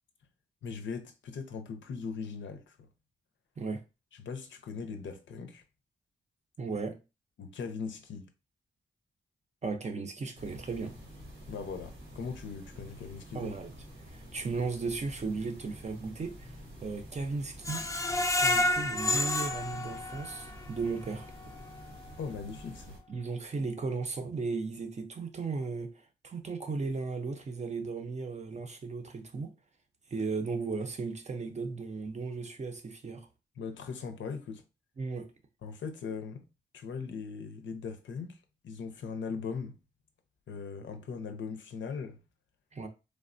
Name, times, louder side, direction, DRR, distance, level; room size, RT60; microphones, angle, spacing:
voice 1, 0.6-2.9 4.2-5.6 7.4-8.3 11.5-13.5 22.2-23.0 33.6-34.6 35.6-36.4 36.7-39.8 40.5-42.2, left 5 dB, 70° left, 0.5 m, -39 dB
voice 2, 6.6-7.0 9.6-11.0 13.3-13.7 14.1-16.6 16.8-17.9 18.3-21.3 23.1-29.5 30.1-33.3 35.0-35.3 42.7-42.9, right 4 dB, 35° right, 0.5 m, -36 dB
sound 1, 10.3-23.0, equal, 90° right, 1.1 m, -49 dB
Screech, 17.6-20.6 21.1-21.2 21.6-21.7, left 2 dB, 15° left, 0.3 m, -29 dB
3.2 x 2.1 x 2.5 m
cardioid pair, 90°, 20 cm